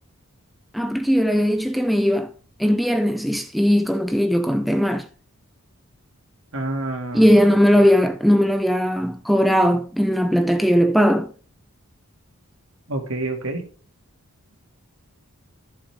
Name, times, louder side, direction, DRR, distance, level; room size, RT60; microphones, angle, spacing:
voice 1, 0.7-2.3 2.6-5.0 7.1-11.3, equal, ahead, 0.5 m, -18 dB
voice 2, 6.5-7.9 12.9-13.6, right 2 dB, 60° right, 2.5 m, -29 dB
14.0 x 7.1 x 3.7 m
head